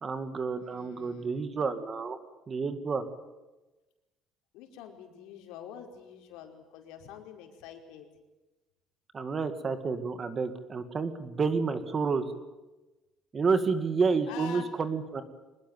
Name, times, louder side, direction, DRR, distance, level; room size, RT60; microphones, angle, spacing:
voice 1, 0.0-2.2 2.5-3.1 9.1-12.2 13.3-15.2, right 4 dB, 25° right, 10 dB, 2.0 m, -29 dB
voice 2, 0.6-1.3 4.5-8.1 14.3-14.7, left 8 dB, 90° left, 4 dB, 5.0 m, -46 dB
25.0 x 20.5 x 9.2 m, 1.1 s
cardioid pair, 170°, 0 cm